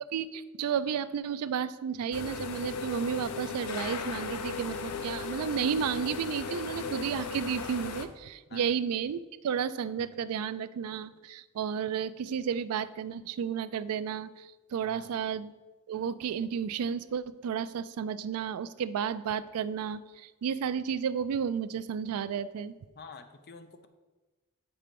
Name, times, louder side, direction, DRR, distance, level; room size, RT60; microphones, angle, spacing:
voice 1, 0.1-15.5 15.9-22.7, right 7 dB, 75° right, 15 dB, 0.3 m, -32 dB
sound 1, 2.1-8.1, left 5 dB, 90° left, 0.6 m, -37 dB
voice 2, 14.8-15.1 23.0-23.9, left 4 dB, 45° left, 8 dB, 0.6 m, -48 dB
7.5 x 4.4 x 5.1 m, 1.2 s
head